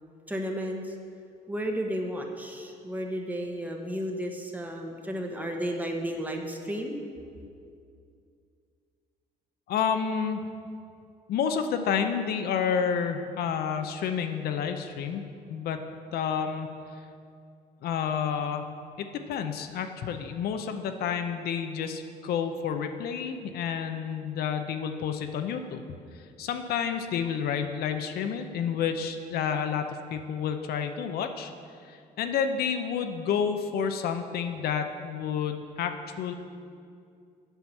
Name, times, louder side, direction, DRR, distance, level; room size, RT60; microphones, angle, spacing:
voice 1, 0.3-0.9 1.5-7.0, equal, 10° right, 2 dB, 1.0 m, -33 dB
voice 2, 9.7-10.4 11.3-15.2 15.5-15.8 16.1-16.7 17.0-17.1 17.8-18.7 19.0-25.8 26.1-31.5 31.8-36.3, left 7 dB, 65° left, 7 dB, 0.7 m, -30 dB
7.9 x 5.8 x 7.3 m, 2.4 s
cardioid pair, 110°, 17 cm